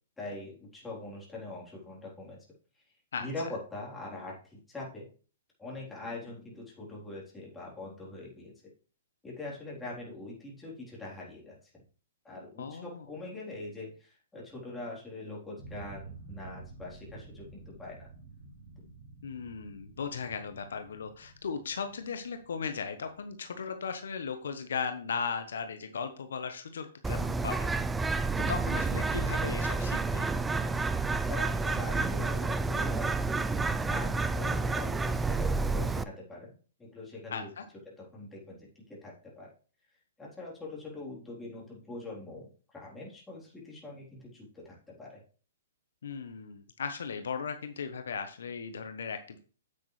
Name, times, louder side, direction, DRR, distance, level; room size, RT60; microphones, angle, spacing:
voice 1, 0.2-2.5 3.2-5.1 5.6-8.5 9.2-11.8 12.2-18.1 28.4-28.5 31.3-36.5 36.8-37.5 37.9-39.5 40.2-45.2, left 2 dB, 10° left, -4 dB, 3.7 m, -43 dB
voice 2, 12.6-13.0 19.2-27.9 28.5-30.3 37.3-37.6 46.0-49.4, left 6 dB, 75° left, 8 dB, 1.1 m, -37 dB
sound 1, 15.6-24.4, right 3 dB, 70° right, 4.9 m, -51 dB
Bird, 27.0-36.0, right 3 dB, 10° right, 0.4 m, -30 dB
8.7 x 8.3 x 3.3 m, 0.39 s
hypercardioid pair, 130°, 0 cm